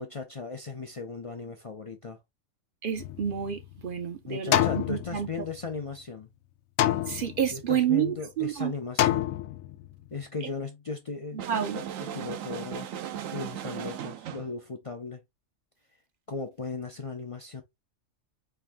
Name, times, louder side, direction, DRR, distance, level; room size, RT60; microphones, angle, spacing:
voice 1, 0.0-2.2 4.3-6.3 7.5-9.4 10.1-11.4 12.0-12.9 13.3-15.2 16.3-17.6, left 4 dB, 55° left, 0.3 m, -37 dB
voice 2, 2.8-5.3 7.1-8.7 10.4-10.5 11.3-11.8, right 9 dB, 55° right, 0.6 m, -29 dB
sound 1, 3.0-3.9 4.5-5.8 6.8-7.8 9.0-10.0, left 12 dB, 85° left, 1.0 m, -28 dB
sound 2, 11.4-14.5, right 10 dB, 80° right, 1.0 m, -37 dB
4.5 x 2.5 x 3.4 m
omnidirectional pair, 1.4 m